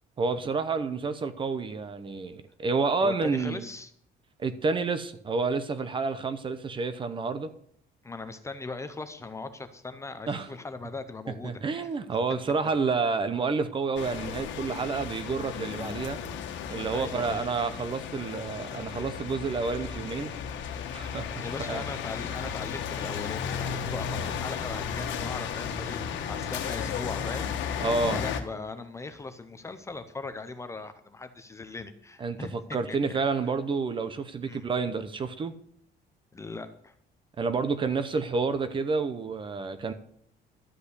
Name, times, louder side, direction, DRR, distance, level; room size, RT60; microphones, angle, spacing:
voice 1, 0.2-3.6 4.4-7.5 10.3-10.5 11.4-16.2 16.7-20.3 20.9-21.8 27.8-28.2 32.2-35.5 37.4-39.9, right 4 dB, 25° right, 11 dB, 0.7 m, -29 dB
voice 2, 3.0-3.9 8.0-11.9 16.9-17.5 21.3-27.5 28.1-33.2 34.4-34.7 36.3-36.9, left 3 dB, 15° left, 9 dB, 0.7 m, -39 dB
sound 1, 14.0-28.4, left 7 dB, 80° left, 1.5 m, -34 dB
12.5 x 5.5 x 8.2 m, 0.65 s
cardioid pair, 170°, 19 cm